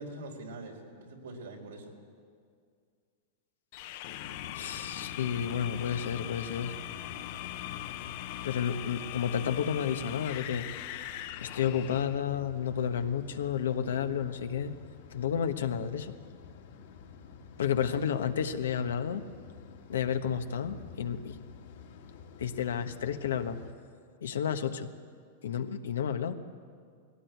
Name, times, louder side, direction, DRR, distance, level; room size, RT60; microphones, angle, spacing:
voice 1, 0.0-1.9 17.6-18.0, right 2 dB, 90° right, 1 dB, 4.4 m, -44 dB
sound 1, 3.7-12.2, left 12 dB, 55° left, 0.9 m, -41 dB
sound 2, 4.2-23.7, left 6 dB, 70° left, 2.8 m, -50 dB
voice 2, 4.5-6.7 8.4-10.7 11.4-14.7 15.1-16.1 17.6-19.2 19.9-21.4 22.4-23.6 24.2-24.9 25.4-26.3, left 8 dB, 90° left, 8 dB, 1.2 m, -31 dB
19.5 x 17.0 x 9.4 m, 2.1 s
hypercardioid pair, 140°, 0 cm